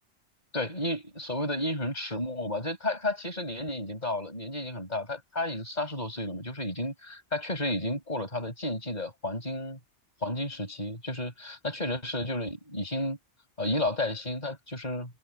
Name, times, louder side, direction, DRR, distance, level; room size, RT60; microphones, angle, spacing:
voice 1, 0.5-9.8 10.2-13.2 13.6-15.2, left 1 dB, 35° left, 6.2 m, -32 dB
omnidirectional pair, 1.2 m